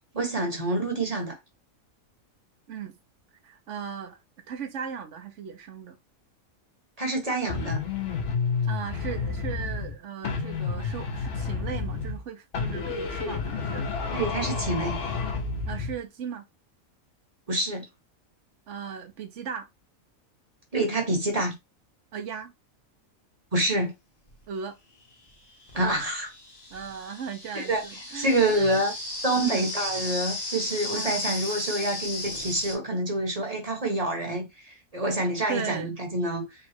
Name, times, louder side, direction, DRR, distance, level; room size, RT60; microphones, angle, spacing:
voice 1, 0.1-1.4 7.0-7.8 14.1-15.0 17.5-17.8 20.7-21.5 23.5-23.9 25.7-26.3 27.5-27.8 28.1-28.9 29.2-36.5, right 1 dB, 30° right, 1.4 m, -27 dB
voice 2, 3.4-4.2 4.5-6.0 8.6-13.9 15.7-16.4 18.7-19.7 22.1-22.5 24.5-24.8 26.7-28.8 29.3-29.7 30.9-31.4 33.9-34.0 35.5-35.9, right 7 dB, 65° right, 1.1 m, -37 dB
sound 1, 7.5-10.0 10.2-12.3 12.5-16.0, left 5 dB, 60° left, 1.1 m, -30 dB
sound 2, 24.3-24.4 25.3-32.8, left 2 dB, 30° left, 1.2 m, -35 dB
4.0 x 2.4 x 4.3 m
omnidirectional pair, 1.4 m